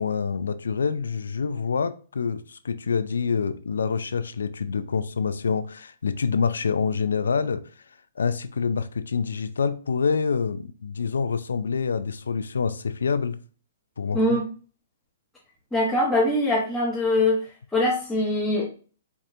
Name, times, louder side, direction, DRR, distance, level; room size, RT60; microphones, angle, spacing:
voice 1, 0.0-7.6 8.2-13.4 14.0-14.4, left 5 dB, 85° left, 0.4 m, -26 dB
voice 2, 15.7-17.4 17.7-18.7, left 1 dB, 5° left, 1.0 m, -22 dB
4.7 x 2.6 x 2.5 m
hypercardioid pair, 140°, 0 cm